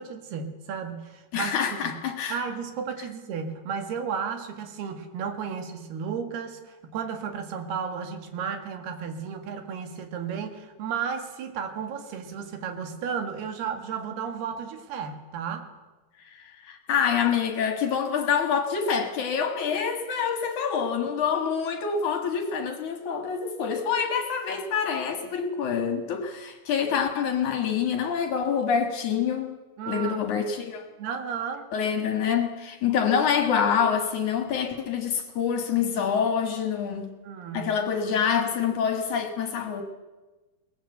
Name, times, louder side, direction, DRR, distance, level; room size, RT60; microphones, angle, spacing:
voice 1, 0.0-2.0 2.3-15.7 29.8-30.2 31.0-31.7 37.2-37.9, right 6 dB, 75° right, 7 dB, 3.9 m, -33 dB
voice 2, 1.3-2.4 16.2-29.5 29.9-30.9 31.7-37.1 37.5-39.8, left 7 dB, 55° left, 6 dB, 2.7 m, -26 dB
22.5 x 19.5 x 8.0 m, 1.2 s
omnidirectional pair, 4.6 m